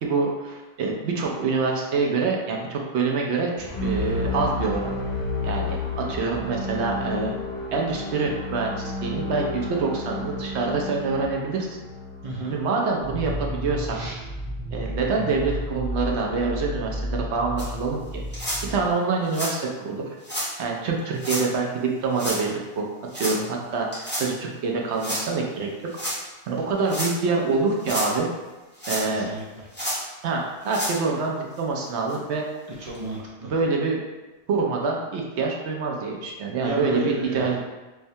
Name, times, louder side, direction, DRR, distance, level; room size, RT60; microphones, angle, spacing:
voice 1, 0.0-4.9 5.4-7.3 7.7-11.7 12.5-14.0 14.7-18.2 18.6-22.9 23.1-25.7 26.5-28.3 28.9-29.3 30.2-32.4 33.4-34.0 34.5-37.6, right 4 dB, 80° right, 0 dB, 0.9 m, -26 dB
sound 1, 3.6-13.6, left 2 dB, 55° left, 0.9 m, -31 dB
voice 2, 12.2-12.6 13.9-14.2 29.0-29.7 32.8-33.5 36.6-37.4, equal, 40° right, -3 dB, 0.5 m, -32 dB
sound 2, 13.0-18.9, equal, 75° left, 1.5 m, -32 dB
sound 3, 17.6-17.7 18.3-18.6 19.3-19.5 20.2-20.5 21.2-21.4 22.1-22.4 23.1-23.4 23.9-24.3 25.0-25.2 25.9-26.2 26.8-27.1 27.7-28.1 28.8-29.3 29.7-30.0 30.6-31.0 31.6-31.7 32.1-32.2 32.9-33.0, equal, 10° left, 0.8 m, -30 dB
4.6 x 2.1 x 2.7 m, 1.1 s
omnidirectional pair, 1.1 m